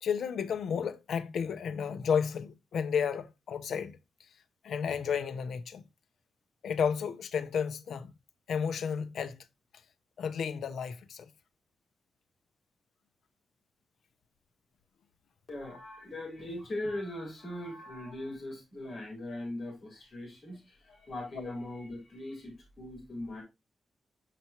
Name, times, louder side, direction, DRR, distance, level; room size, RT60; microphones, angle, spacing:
voice 1, 0.0-4.0 4.6-5.8 6.6-8.1 8.5-9.4 10.2-11.3 21.4-21.5, left 7 dB, 80° left, 0.7 m, -32 dB
voice 2, 15.5-23.4, left 1 dB, 40° left, 3.8 m, -40 dB
6.8 x 5.9 x 2.8 m
wide cardioid pair, 180°, 0 cm